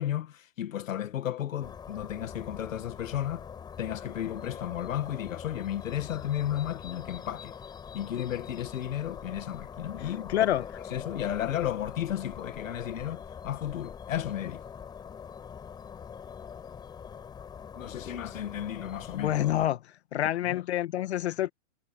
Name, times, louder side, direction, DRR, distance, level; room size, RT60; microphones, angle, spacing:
voice 1, 0.0-3.5 3.8-7.5 7.9-10.5 10.9-14.7 17.7-19.3 20.5-20.6, left 11 dB, 85° left, 1.9 m, -33 dB
sound 1, 1.6-19.7, left 7 dB, 10° left, 7.8 m, -43 dB
voice 2, 10.3-10.6 19.1-19.8 20.1-21.5, left 12 dB, 55° left, 1.4 m, -27 dB
hypercardioid pair, 175°, 38 cm